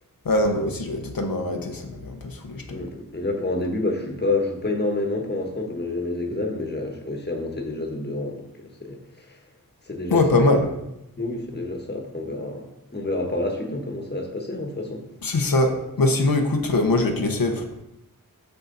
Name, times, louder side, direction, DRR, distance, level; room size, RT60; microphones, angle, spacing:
voice 1, 0.2-2.9 10.1-10.7 15.2-17.7, left 2 dB, 80° left, 3 dB, 0.9 m, -22 dB
voice 2, 2.7-9.4 9.9-10.2 11.2-15.0, left 2 dB, 30° left, 2 dB, 1.4 m, -28 dB
6.7 x 6.5 x 4.0 m, 0.87 s
wide cardioid pair, 75°, 34 cm